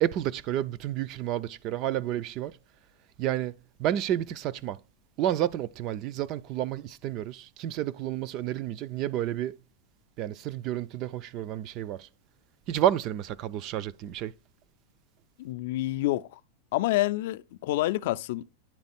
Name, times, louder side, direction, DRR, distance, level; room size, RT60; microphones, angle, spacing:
voice 1, 0.0-2.6 3.2-4.8 5.2-9.6 10.2-12.1 12.7-14.3, right 12 dB, 30° right, 0.3 m, -30 dB
voice 2, 15.4-16.4 16.7-18.4, left 16 dB, 55° left, 0.4 m, -28 dB
9.8 x 3.7 x 4.2 m
supercardioid pair, 175°, 0 cm